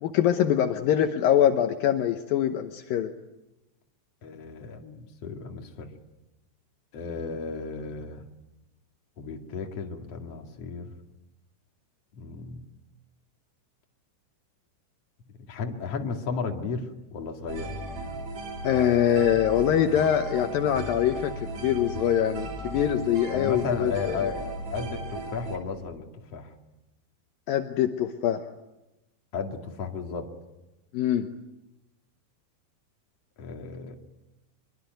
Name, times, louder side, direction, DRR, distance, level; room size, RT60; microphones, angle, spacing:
voice 1, 0.0-3.1 18.6-24.3 27.5-28.4 30.9-31.3, left 10 dB, 80° left, 6 dB, 2.1 m, -24 dB
voice 2, 4.2-5.9 6.9-8.2 9.2-10.9 12.2-12.6 15.5-17.7 23.3-26.5 29.3-30.3 33.4-34.0, left 5 dB, 40° left, 2 dB, 2.5 m, -34 dB
sound 1, 17.5-25.6, right 2 dB, 45° right, 4.0 m, -36 dB
25.0 x 23.5 x 9.2 m, 0.97 s
omnidirectional pair, 5.5 m